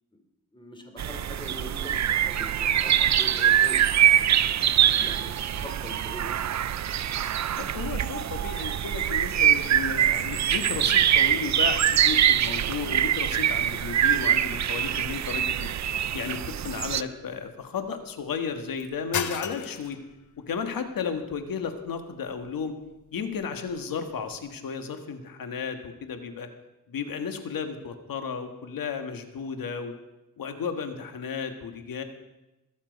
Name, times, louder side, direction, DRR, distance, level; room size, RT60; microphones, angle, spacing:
voice 1, 0.5-3.8 4.9-6.3 8.2-8.3, left 1 dB, 15° left, 4 dB, 2.9 m, -42 dB
sound 1, 1.0-17.0, right 10 dB, 55° right, 0.6 m, -24 dB
voice 2, 7.5-15.7 16.1-20.0 20.4-22.7 23.1-26.5 26.9-29.9 30.4-32.0, left 6 dB, 75° left, 7 dB, 1.6 m, -33 dB
sound 2, 14.5-24.4, left 8 dB, 60° left, 0.9 m, -41 dB
21.5 x 7.3 x 5.3 m, 0.99 s
cardioid pair, 90°, 34 cm